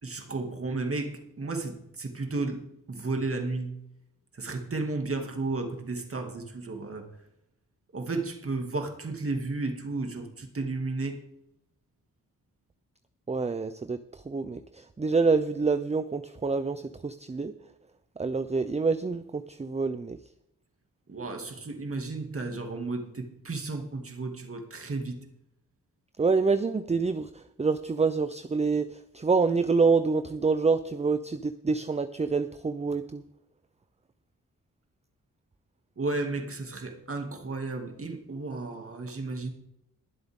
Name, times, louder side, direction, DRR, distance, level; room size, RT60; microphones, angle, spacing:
voice 1, 0.0-3.8 4.3-7.1 7.9-11.2 21.1-25.2 36.0-39.5, right 3 dB, 40° right, 4 dB, 2.4 m, -33 dB
voice 2, 13.3-17.5 18.2-20.2 26.2-33.2, right 4 dB, 20° right, 11 dB, 0.6 m, -27 dB
21.5 x 7.8 x 3.7 m, 0.82 s
cardioid pair, 75°, 33 cm